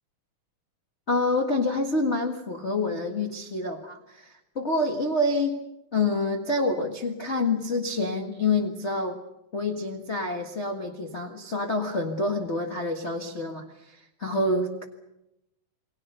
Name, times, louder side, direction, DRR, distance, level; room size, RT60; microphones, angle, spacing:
voice 1, 1.1-5.6 5.9-9.2 9.5-14.8, left 2 dB, 40° left, 1 dB, 0.9 m, -27 dB
29.0 x 20.5 x 6.8 m, 0.87 s
omnidirectional pair, 4.2 m